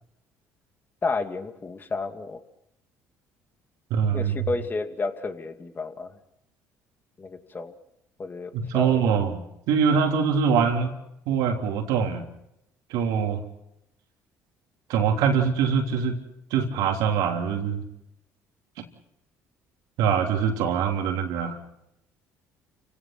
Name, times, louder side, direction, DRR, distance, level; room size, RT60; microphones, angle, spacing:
voice 1, 1.0-2.4 4.1-6.2 7.2-7.7 8.2-9.1, left 3 dB, 30° left, 7 dB, 2.4 m, -31 dB
voice 2, 3.9-4.5 8.5-9.4 9.7-10.9 11.3-12.3 12.9-13.4 14.9-16.2 16.5-17.8 20.0-21.6, right 6 dB, 75° right, 3 dB, 3.4 m, -23 dB
29.5 x 17.0 x 6.1 m, 0.81 s
supercardioid pair, 70°, 6 cm